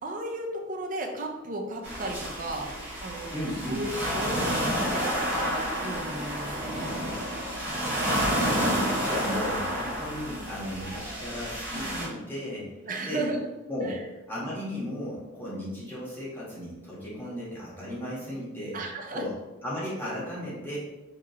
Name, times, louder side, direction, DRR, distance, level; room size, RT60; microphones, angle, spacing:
voice 1, 0.0-2.7 3.0-3.3 3.7-5.1 5.4-7.1 11.7-11.9 12.8-13.5 13.8-14.0 17.0-17.2 18.7-19.2, right 2 dB, 40° right, 1 dB, 0.6 m, -35 dB
sound 1, 1.8-12.1, equal, 10° right, 1.4 m, -30 dB
voice 2, 3.3-3.8 8.0-12.6 13.0-13.3 13.7-13.9 14.3-18.8 19.1-19.3 19.6-20.8, equal, 10° left, -8 dB, 1.4 m, -35 dB
4.7 x 2.9 x 2.9 m, 1.0 s
head